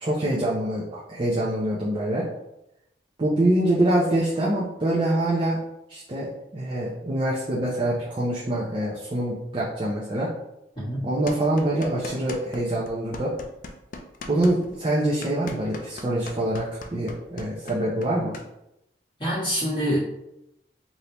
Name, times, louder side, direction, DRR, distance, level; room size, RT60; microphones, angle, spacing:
voice 1, 0.0-2.3 3.2-5.6 5.9-10.3 11.0-13.3 14.3-18.3, right 1 dB, 30° right, -6 dB, 0.6 m, -25 dB
voice 2, 10.7-11.1 19.2-20.0, equal, 25° left, -14 dB, 1.4 m, -26 dB
sound 1, 11.3-12.6 12.9-18.5, left 3 dB, 50° left, 0.4 m, -39 dB
3.3 x 2.7 x 2.8 m, 0.85 s
head